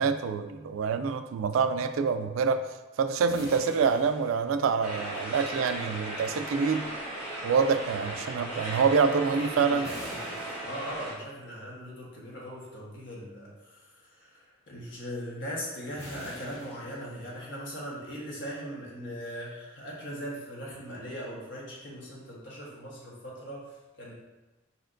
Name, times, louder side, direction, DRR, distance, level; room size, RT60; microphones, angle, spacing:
voice 1, 0.0-2.6 3.0-6.9 7.4-9.9, right 5 dB, 90° right, 10 dB, 0.3 m, -26 dB
sound 1, 3.3-5.2 9.8-11.5 16.0-17.6, equal, 15° left, 1.4 m, -46 dB
sound 2, 4.8-11.1, right 1 dB, 5° right, 1.5 m, -37 dB
voice 2, 9.3-10.2 10.6-24.1, equal, 65° left, -4 dB, 1.3 m, -40 dB
4.5 x 4.2 x 2.5 m, 1.1 s
head